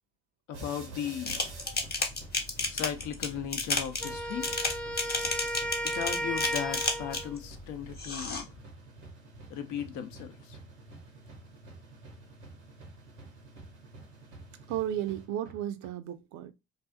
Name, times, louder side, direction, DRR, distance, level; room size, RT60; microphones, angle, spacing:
voice 1, 0.5-1.4 2.7-4.5 5.9-8.5 9.5-10.6, left 9 dB, 60° left, 0.6 m, -36 dB
sound 1, 0.5-15.9, right 2 dB, 90° right, 0.8 m, -49 dB
sound 2, 1.3-7.4 7.9-8.4, left 3 dB, 30° left, 0.8 m, -32 dB
Wind instrument woodwind instrument, 4.0-7.4, right 1 dB, 5° left, 0.5 m, -34 dB
voice 2, 14.7-16.5, right 11 dB, 55° right, 0.5 m, -34 dB
2.4 x 2.4 x 2.4 m
hypercardioid pair, 50°, 34 cm